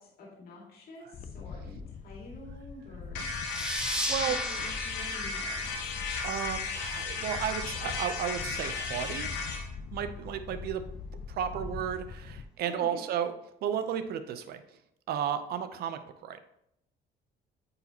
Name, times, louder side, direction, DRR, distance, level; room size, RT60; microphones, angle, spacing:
voice 1, 0.2-3.3 4.2-5.7 12.6-13.0, left 1 dB, 65° left, -3 dB, 2.2 m, -48 dB
Wind, 1.1-12.4, left 5 dB, 45° left, 0.5 m, -43 dB
sound 1, 3.1-9.6, left 4 dB, 90° left, 1.1 m, -35 dB
sound 2, 3.4-6.7, equal, 5° right, 0.9 m, -36 dB
voice 2, 3.9-4.4 6.2-9.3 9.9-10.8 11.3-13.3 13.6-14.6 15.1-16.4, right 9 dB, 70° right, 10 dB, 0.6 m, -33 dB
8.8 x 4.1 x 2.9 m, 0.78 s
cardioid pair, 110°, 17 cm